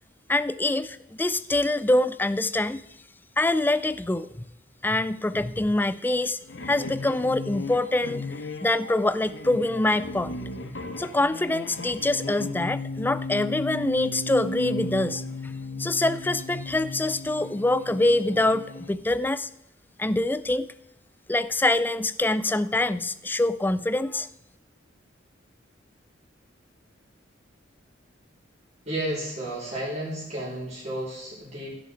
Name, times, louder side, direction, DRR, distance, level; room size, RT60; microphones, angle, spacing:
voice 1, 0.3-2.8 3.4-4.5 4.8-6.4 6.6-8.3 8.6-10.4 11.0-15.5 15.8-19.5 20.0-20.7 21.3-24.3, left 2 dB, 10° left, 16 dB, 0.3 m, -25 dB
sound 1, 6.4-18.9, left 2 dB, 65° left, 1.2 m, -35 dB
voice 2, 28.8-31.8, right 1 dB, 40° right, -8 dB, 4.3 m, -32 dB
15.5 x 6.8 x 4.6 m, 0.86 s
head